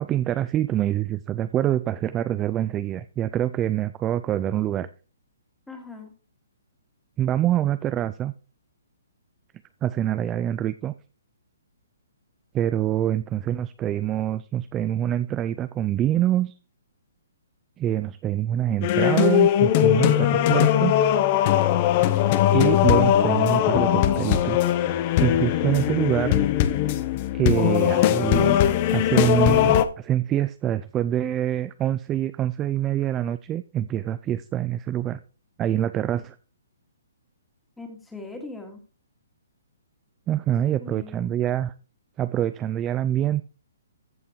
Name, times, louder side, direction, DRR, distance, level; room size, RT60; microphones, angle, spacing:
voice 1, 0.0-4.9 7.2-8.3 9.8-10.9 12.5-16.5 17.8-21.0 22.5-24.7 25.2-26.3 27.3-28.6 28.9-35.2 35.6-36.4 40.3-41.7 42.2-43.4, right 11 dB, 15° right, 14 dB, 0.3 m, -25 dB
voice 2, 5.7-6.1 37.8-38.8 40.8-41.4, left 3 dB, 5° left, 3 dB, 2.1 m, -40 dB
sound 1, 18.8-29.8, left 11 dB, 30° left, 0.7 m, -20 dB
15.0 x 5.6 x 3.1 m, 0.35 s
hypercardioid pair, 155°, 0 cm